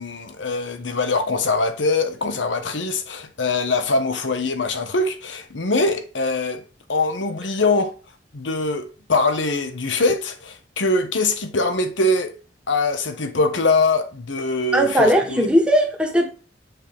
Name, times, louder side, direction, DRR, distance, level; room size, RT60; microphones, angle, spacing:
voice 1, 0.0-6.6 6.9-7.9 8.3-12.3 12.7-15.5, left 3 dB, 85° left, 1.1 m, -22 dB
voice 2, 14.7-16.3, equal, 5° right, 1.3 m, -18 dB
6.4 x 4.9 x 3.6 m
head